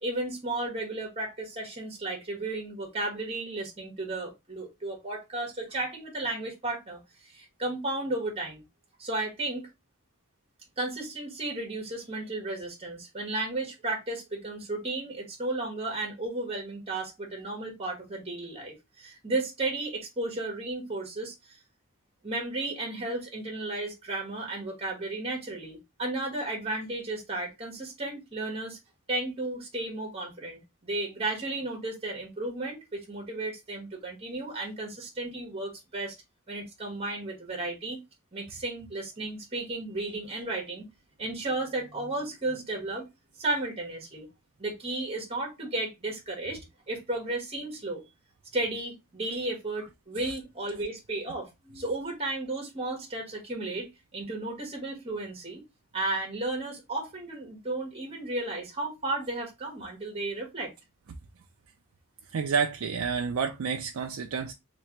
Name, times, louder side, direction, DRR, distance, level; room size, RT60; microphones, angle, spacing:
voice 1, 0.0-8.6 9.0-9.6 10.8-21.6 22.2-28.8 29.1-36.1 36.5-38.0 38.3-40.9 41.2-43.0 43.4-44.3 44.6-46.6 46.9-48.0 48.5-53.9 54.1-55.6 55.9-60.7, right 2 dB, 25° right, 1.4 m, -34 dB
voice 2, 62.3-64.5, right 6 dB, 65° right, 0.4 m, -29 dB
3.2 x 3.0 x 3.0 m
head